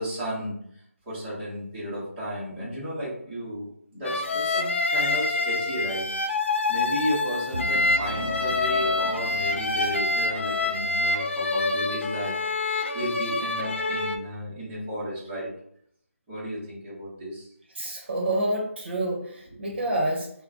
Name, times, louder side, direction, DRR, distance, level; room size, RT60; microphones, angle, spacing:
voice 1, 0.0-6.0 6.7-12.3 12.6-15.5 16.3-17.5, equal, 10° right, -10 dB, 0.9 m, -33 dB
sound 1, 4.0-14.2, left 3 dB, 55° left, 0.5 m, -26 dB
sound 2, 7.5-11.1, right 1 dB, 75° right, 0.6 m, -38 dB
voice 2, 17.7-20.3, right 1 dB, 45° right, -1 dB, 1.0 m, -28 dB
3.7 x 2.2 x 3.6 m, 0.68 s
figure-of-eight pair, 175°, 8 cm